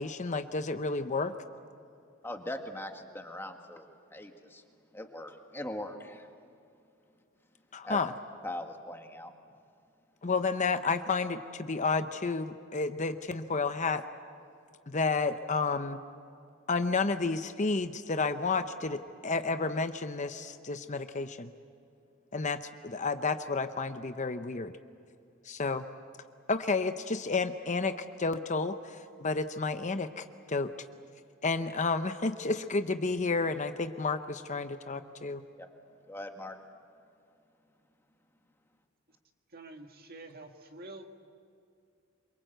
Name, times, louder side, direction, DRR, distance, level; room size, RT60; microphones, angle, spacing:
voice 1, 0.0-1.3 7.7-8.1 10.2-14.0 14.9-16.0 16.7-21.5 22.3-24.7 25.5-25.8 26.5-30.7 31.4-35.4, left 4 dB, 35° left, 9 dB, 0.8 m, -31 dB
voice 2, 2.2-4.6 4.9-6.3 7.8-8.0 8.4-9.3 35.6-35.7 36.1-36.6, left 1 dB, 10° left, 4 dB, 1.8 m, -41 dB
voice 3, 39.5-41.1, right 2 dB, 50° right, 4 dB, 1.9 m, -47 dB
27.0 x 24.0 x 8.0 m, 2.5 s
head